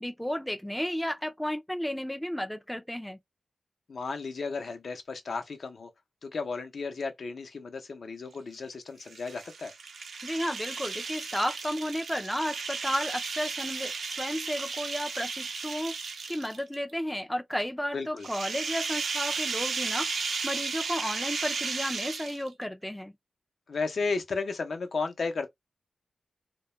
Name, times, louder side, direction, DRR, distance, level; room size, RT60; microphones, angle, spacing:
voice 1, 0.0-3.2 10.2-16.0 16.3-20.1 20.4-23.1, equal, 5° left, 0.3 m, -33 dB
voice 2, 3.9-5.9 6.2-9.7 17.9-18.3 23.7-25.5, left 4 dB, 70° left, 0.6 m, -34 dB
sound 1, 9.0-16.7 18.2-22.6, right 5 dB, 85° right, 0.5 m, -34 dB
2.2 x 2.0 x 2.9 m
wide cardioid pair, 80°, 0 cm